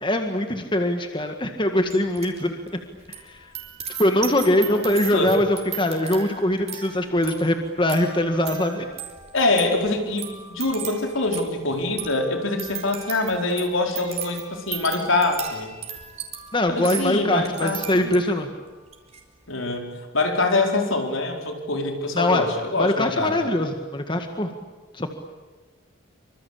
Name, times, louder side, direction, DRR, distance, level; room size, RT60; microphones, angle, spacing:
voice 1, 0.0-2.6 3.2-3.5 4.0-8.9 16.5-18.5 22.2-22.5 22.8-24.5 24.9-25.1, left 1 dB, 25° left, 5 dB, 1.9 m, -22 dB
sound 1, 1.9-2.4 2.7-18.4 18.9-19.2, right 8 dB, 30° right, 4.4 m, -37 dB
voice 2, 9.3-15.7 16.7-18.1 19.5-19.9 20.1-23.3, left 2 dB, 75° left, 3 dB, 4.7 m, -24 dB
26.5 x 25.5 x 8.7 m, 1.3 s
head